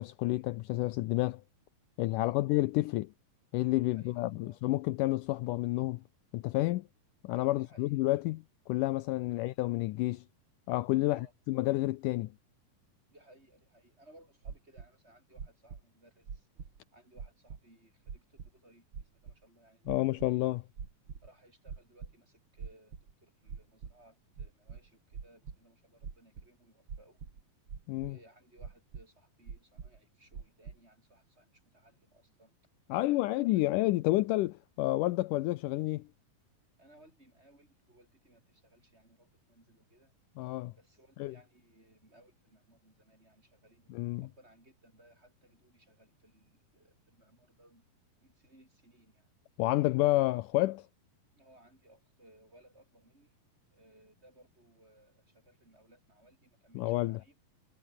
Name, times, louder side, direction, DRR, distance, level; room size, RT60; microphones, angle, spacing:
voice 1, 0.0-1.4 2.0-3.1 3.5-6.0 6.3-6.9 7.2-10.2 10.7-11.2 11.5-12.3 19.9-20.6 27.9-28.2 32.9-36.1 40.4-40.7 41.2-41.4 43.9-44.3 49.6-50.9 56.7-57.2, left 18 dB, 80° left, 2.1 m, -30 dB
voice 2, 2.1-2.5 3.8-4.6 7.5-8.0 9.3-9.4 11.1-11.3 13.1-16.5 16.9-20.4 21.2-27.2 28.0-32.6 32.9-33.6 36.8-40.1 40.8-47.9 48.2-49.3 51.4-53.4 53.7-57.4, right 1 dB, 15° right, 6.9 m, -62 dB
sound 1, 14.4-14.9 15.4-15.8 16.3-16.8 17.2-17.6 18.1-18.5 18.9-19.3 19.8-20.3 20.8-21.3 21.7-22.1 22.6-23.1 23.5-23.9 24.4-25.6 26.0-26.5 26.9-27.4 27.7-28.1 28.6-29.0 29.5-30.0 30.3-30.8, right 6 dB, 40° right, 3.0 m, -44 dB
omnidirectional pair, 4.0 m